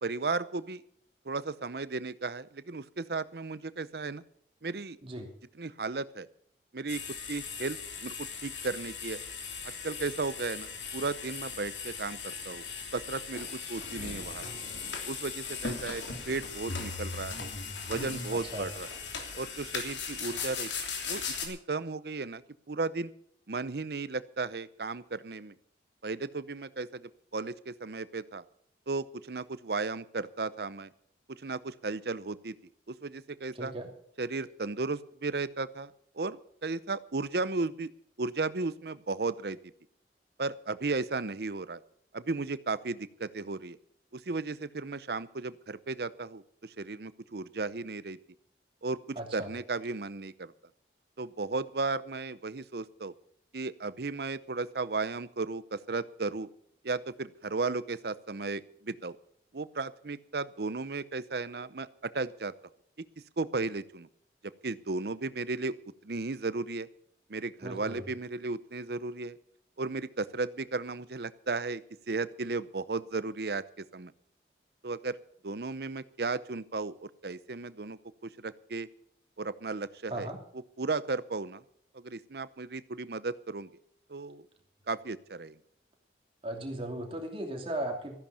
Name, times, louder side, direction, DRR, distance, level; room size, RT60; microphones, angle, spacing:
voice 1, 0.0-0.8 1.3-4.2 4.6-5.0 5.6-6.3 6.7-7.0 7.3-9.2 9.8-12.6 12.9-14.4 15.1-17.5 17.9-18.9 19.4-20.7 21.0-22.4 22.7-23.1 23.5-25.5 26.0-28.4 28.9-30.9 31.3-32.5 32.9-33.7 34.2-37.9 38.2-39.6 40.4-41.8 42.1-43.8 44.1-48.2 48.8-49.0 49.3-50.5 51.2-53.1 53.5-56.5 56.8-59.2 59.5-62.5 63.4-64.1 64.6-65.7 66.0-66.9 67.3-69.4 69.8-71.8 72.1-74.1 74.8-75.2 75.4-78.9 79.4-80.3 80.8-81.6 81.9-83.7 84.1-84.4 84.9-85.5, right 3 dB, 60° right, 16 dB, 0.7 m, -35 dB
sound 1, 6.9-21.5, left 5 dB, 90° left, 3.1 m, -38 dB
voice 2, 18.3-18.7 33.6-33.9 49.2-49.5 67.6-68.0 80.1-80.4 86.4-88.1, right 1 dB, 30° right, 2 dB, 2.9 m, -37 dB
14.5 x 10.5 x 6.9 m, 0.64 s
head